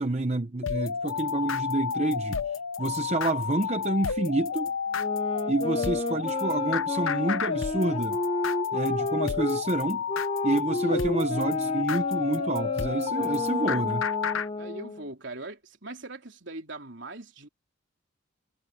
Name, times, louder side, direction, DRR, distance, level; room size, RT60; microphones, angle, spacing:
voice 1, 0.0-2.4 2.8-4.7 5.5-8.2 8.7-10.0 10.4-14.1, right 2 dB, 30° right, 0.8 m, -28 dB
sound 1, 0.6-14.5, left 6 dB, 80° left, 0.7 m, -30 dB
sound 2, 5.0-9.6 10.1-15.1, left 2 dB, 25° left, 0.7 m, -32 dB
voice 2, 10.7-11.2 14.6-17.5, right 2 dB, 60° right, 3.8 m, -41 dB
head